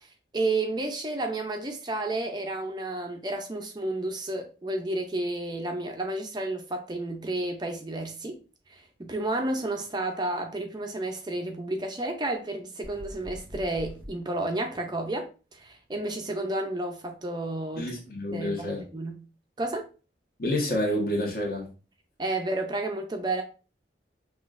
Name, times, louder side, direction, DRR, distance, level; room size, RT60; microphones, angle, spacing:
voice 1, 0.0-8.4 8.7-15.3 15.5-17.9 18.3-19.2 19.6-19.9 22.2-23.4, right 2 dB, 25° right, 0.5 m, -31 dB
sound 1, 12.8-14.1, equal, 10° left, 1.5 m, -42 dB
voice 2, 17.8-18.8 20.4-21.7, left 1 dB, 50° left, 1.2 m, -28 dB
5.8 x 2.4 x 2.4 m
head